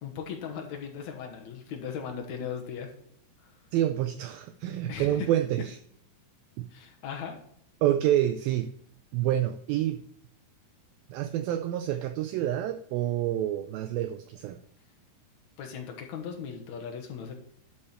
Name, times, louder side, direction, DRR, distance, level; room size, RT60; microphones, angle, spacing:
voice 1, 0.0-2.9 3.4-3.6 4.9-5.3 6.7-7.4 15.6-17.4, left 7 dB, 70° left, 2 dB, 1.8 m, -38 dB
voice 2, 3.7-5.8 6.6-6.7 7.8-8.7 9.1-10.0 11.1-14.6, right 12 dB, 90° right, 9 dB, 2.0 m, -28 dB
12.0 x 4.4 x 4.3 m, 0.67 s
omnidirectional pair, 4.7 m